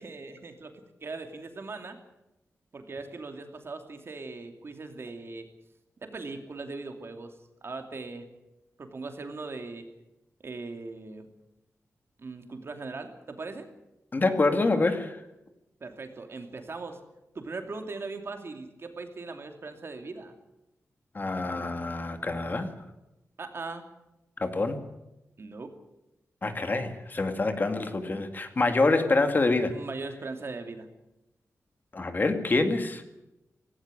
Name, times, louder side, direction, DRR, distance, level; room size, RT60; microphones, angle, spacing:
voice 1, 0.0-2.0 2.7-5.5 6.0-7.3 7.6-8.3 8.8-9.9 10.4-11.3 12.2-13.7 15.8-17.0 17.3-20.3 23.4-23.9 25.4-25.7 29.7-30.9, right 3 dB, 45° right, 6 dB, 2.7 m, -39 dB
voice 2, 14.1-15.2 21.1-22.7 24.4-24.8 26.4-29.8 31.9-33.0, left 3 dB, 35° left, 7 dB, 2.1 m, -26 dB
17.5 x 17.0 x 9.8 m, 0.92 s
wide cardioid pair, 130°, 6 cm